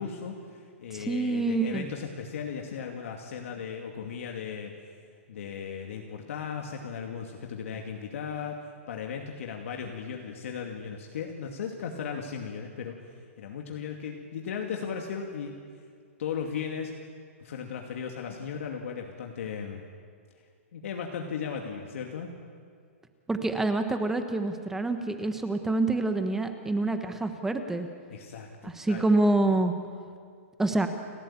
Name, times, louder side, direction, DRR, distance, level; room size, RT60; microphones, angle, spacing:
voice 1, 0.0-5.0 5.3-8.6 8.9-13.0 13.4-15.5 16.2-16.9 17.4-19.8 20.7-22.3 28.1-29.0, left 6 dB, 70° left, 2 dB, 2.5 m, -36 dB
voice 2, 0.9-1.9 23.3-27.9 28.6-29.7 30.6-30.9, right 2 dB, 5° right, 7 dB, 1.2 m, -26 dB
29.5 x 13.0 x 9.0 m, 2.2 s
hypercardioid pair, 155°, 8 cm